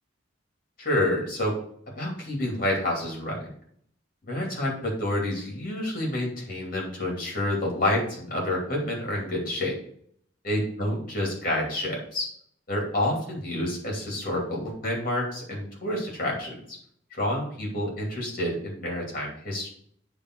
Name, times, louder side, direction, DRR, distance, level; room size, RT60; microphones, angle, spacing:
voice 1, 0.8-1.6 1.9-3.4 4.2-9.8 10.4-12.3 12.7-16.8 17.1-19.7, left 1 dB, 45° left, -1 dB, 2.6 m, -28 dB
9.0 x 3.5 x 4.6 m, 0.64 s
head